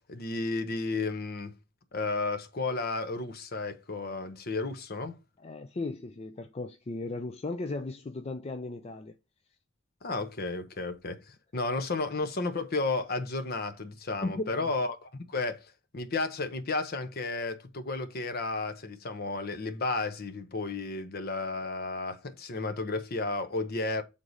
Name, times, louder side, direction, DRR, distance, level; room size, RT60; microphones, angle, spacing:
voice 1, 0.0-1.5 1.9-5.2 10.0-15.6 15.9-24.0, left 3 dB, 50° left, 0.8 m, -33 dB
voice 2, 5.4-9.1 14.2-14.7, left 2 dB, 30° left, 0.4 m, -36 dB
6.4 x 3.7 x 4.0 m
head